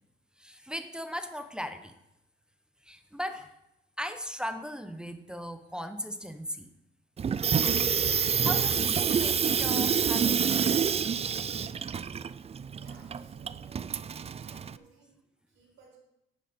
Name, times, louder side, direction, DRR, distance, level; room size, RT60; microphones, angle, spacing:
voice 1, 0.4-1.9 2.8-3.5 4.0-6.7 8.4-10.4, equal, 5° right, 8 dB, 0.8 m, -38 dB
Water tap faucet / Sink (filling or washing), 7.2-14.8, right 7 dB, 30° right, 0.4 m, -28 dB
voice 2, 12.8-13.9 14.4-16.0, right 4 dB, 80° right, -2 dB, 4.4 m, -58 dB
11.0 x 10.0 x 4.3 m, 0.85 s
cardioid pair, 90°, 20 cm